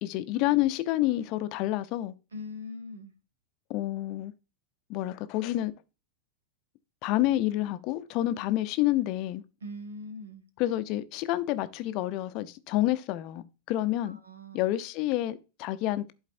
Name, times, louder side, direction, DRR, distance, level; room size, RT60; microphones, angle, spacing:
voice 1, 0.0-2.1 3.7-4.3 4.9-5.7 7.0-9.4 10.6-14.2 14.5-16.1, left 15 dB, 40° left, 0.6 m, -28 dB
voice 2, 2.3-3.1 9.6-10.4 14.0-14.6, left 2 dB, 70° right, 1.0 m, -41 dB
11.5 x 4.0 x 2.6 m
figure-of-eight pair, 90°, 0 cm